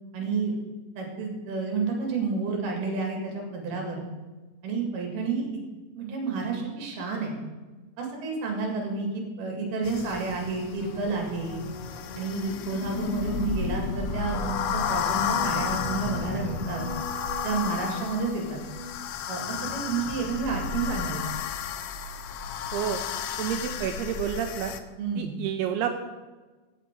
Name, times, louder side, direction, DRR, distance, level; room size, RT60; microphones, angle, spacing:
voice 1, 0.1-0.6 1.0-4.0 4.6-5.5 6.0-7.3 8.0-11.6 12.2-16.9 17.4-18.6 19.3-21.3 25.0-25.3, right 4 dB, 60° right, 1 dB, 3.8 m, -30 dB
sound 1, 9.8-24.8, left 7 dB, 85° left, 2.3 m, -32 dB
sound 2, 10.8-18.9, equal, 20° right, 1.1 m, -42 dB
voice 2, 23.4-24.7 25.2-26.0, right 9 dB, 85° right, 6 dB, 2.3 m, -29 dB
15.5 x 6.7 x 4.6 m, 1.2 s
omnidirectional pair, 5.2 m